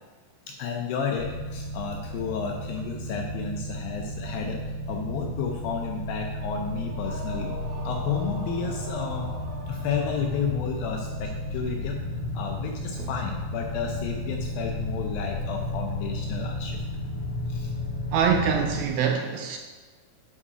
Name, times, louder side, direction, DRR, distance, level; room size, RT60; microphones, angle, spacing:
voice 1, 0.5-7.5 7.8-9.3 9.7-12.1 12.3-16.8 17.5-17.7, left 6 dB, 80° left, 2 dB, 2.1 m, -32 dB
sound 1, 1.2-18.9, left 1 dB, 65° left, 2.0 m, -33 dB
sound 2, 6.8-10.8, right 2 dB, 70° right, 3.1 m, -42 dB
voice 2, 18.1-19.6, right 7 dB, 85° right, 3 dB, 2.2 m, -24 dB
10.0 x 4.6 x 4.9 m, 1.4 s
omnidirectional pair, 4.7 m